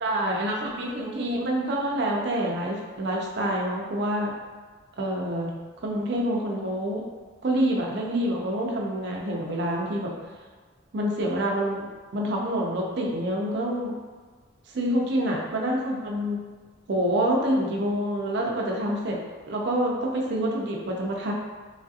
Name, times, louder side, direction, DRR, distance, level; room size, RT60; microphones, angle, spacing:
voice 1, 0.0-4.3 5.0-5.5 5.8-7.0 7.4-10.1 10.9-11.9 12.1-13.9 14.7-16.4 16.9-19.2 19.5-21.3, right 1 dB, 55° right, -2 dB, 0.5 m, -27 dB
3.1 x 2.4 x 2.7 m, 1.4 s
head